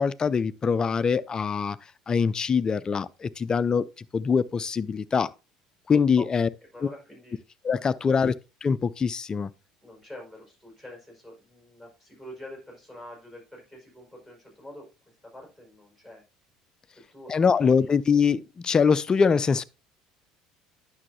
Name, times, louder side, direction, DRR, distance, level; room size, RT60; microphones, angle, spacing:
voice 1, 0.0-1.8 2.1-5.3 5.9-6.5 7.6-8.3 8.6-9.5 17.3-19.6, left 6 dB, 30° left, 0.4 m, -23 dB
voice 2, 6.7-7.4 7.9-8.2 9.8-16.2 17.1-17.9, left 1 dB, 10° right, 5.0 m, -46 dB
9.7 x 6.3 x 2.7 m
figure-of-eight pair, 65°, 3 cm